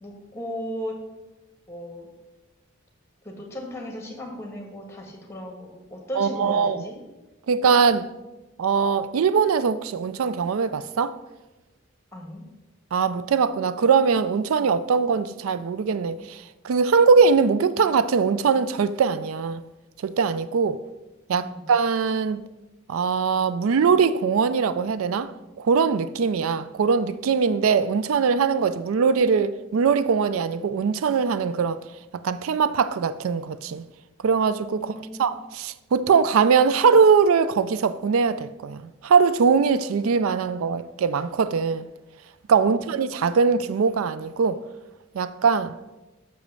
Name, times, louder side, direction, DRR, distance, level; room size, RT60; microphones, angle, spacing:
voice 1, 0.0-1.0 1.7-2.1 3.2-7.0 12.1-12.4 21.4-21.6 34.8-35.4 42.6-42.8, equal, 15° left, 1.5 m, -36 dB
voice 2, 6.2-6.8 7.5-8.1 8.6-11.2 12.9-19.6 20.0-20.8 21.3-22.4 22.9-25.3 25.6-31.8 32.2-33.8 34.2-34.9 35.2-41.9 42.5-44.6 45.1-45.8, right 5 dB, 90° right, 0.4 m, -21 dB
6.3 x 5.0 x 6.8 m
head